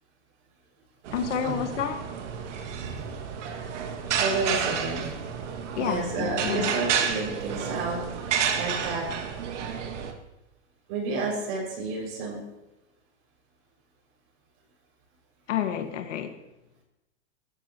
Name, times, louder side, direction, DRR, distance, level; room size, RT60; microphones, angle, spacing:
voice 1, 1.1-2.1 5.7-6.8 15.5-16.3, left 8 dB, 85° left, 5 dB, 1.8 m, -29 dB
sound 1, 1.1-10.1, right 7 dB, 80° right, 2.1 m, -31 dB
voice 2, 4.1-5.1 5.8-9.0 10.9-12.4, right 3 dB, 45° right, -1 dB, 6.0 m, -31 dB
26.0 x 13.5 x 3.0 m, 0.94 s
supercardioid pair, 160°, 36 cm